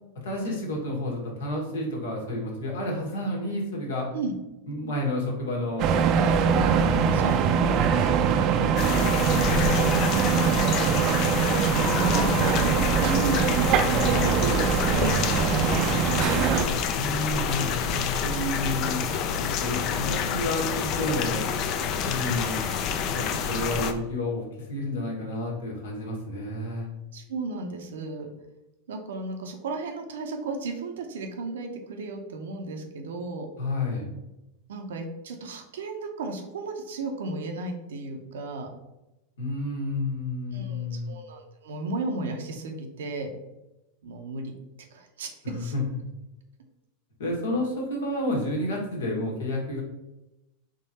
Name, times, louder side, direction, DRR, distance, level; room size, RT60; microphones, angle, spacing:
voice 1, 0.2-4.1 4.7-6.6 6.8-7.3 7.7-8.8 13.8-14.4 16.9-19.1 19.4-21.4 22.0-22.6 23.2-26.9 33.6-34.1 39.4-41.2 45.4-45.8 47.2-49.8, left 1 dB, 80° left, -1 dB, 1.5 m, -31 dB
sound 1, 5.8-16.7, right 7 dB, 45° right, 0.5 m, -23 dB
sound 2, 8.8-23.9, left 6 dB, 45° left, 0.5 m, -28 dB
voice 2, 8.8-9.9 11.6-13.5 13.9-16.4 27.1-28.3 28.9-33.5 34.7-38.7 40.5-43.3 44.0-44.5 44.9-45.7, right 2 dB, 80° right, 4 dB, 0.8 m, -34 dB
3.8 x 3.0 x 4.1 m, 0.96 s
hypercardioid pair, 100°, 0 cm